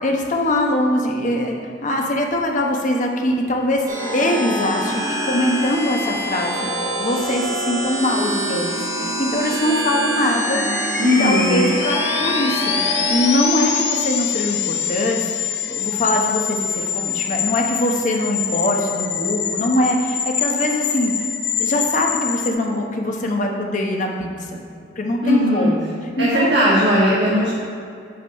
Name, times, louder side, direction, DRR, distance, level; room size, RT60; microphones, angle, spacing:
voice 1, 0.0-3.8 4.1-6.7 7.0-10.6 11.2-12.8 13.1-21.2 21.6-24.6 25.0-25.8 26.2-26.5, left 1 dB, 45° left, 1 dB, 0.9 m, -22 dB
sound 1, 3.9-13.4, equal, 25° right, 1.4 m, -25 dB
sound 2, 9.5-22.5, left 8 dB, 75° left, 0.7 m, -25 dB
voice 2, 11.0-11.7 25.2-25.7 26.2-27.5, left 1 dB, 75° right, -7 dB, 1.4 m, -17 dB
8.5 x 4.1 x 5.2 m, 2.4 s
head